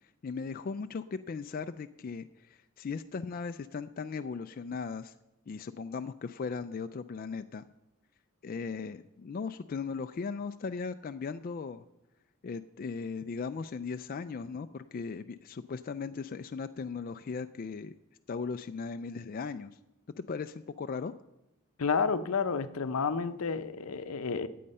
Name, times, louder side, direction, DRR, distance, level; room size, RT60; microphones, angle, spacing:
voice 1, 0.0-5.1 5.5-7.7 8.4-11.9 12.4-18.0 18.3-19.7 20.2-21.1, left 5 dB, 40° left, 0.3 m, -38 dB
voice 2, 21.8-24.5, left 5 dB, 75° left, 0.6 m, -30 dB
14.0 x 8.5 x 5.4 m
head